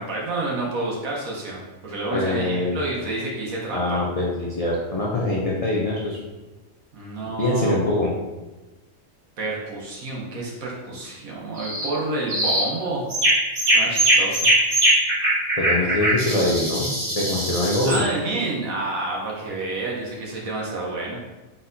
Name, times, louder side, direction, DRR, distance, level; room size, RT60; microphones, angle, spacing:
voice 1, 0.0-4.0 6.9-7.8 9.4-13.0 13.7-14.5 17.8-21.2, right 2 dB, 80° right, -3 dB, 1.2 m, -29 dB
voice 2, 2.1-2.8 3.7-6.2 7.4-8.1 15.6-18.0, left 1 dB, 50° left, -5 dB, 0.4 m, -23 dB
sound 1, 11.6-11.9 12.3-12.7 13.1-18.0, right 1 dB, 45° right, 1.3 m, -21 dB
4.2 x 3.9 x 2.6 m, 1.1 s
omnidirectional pair, 1.4 m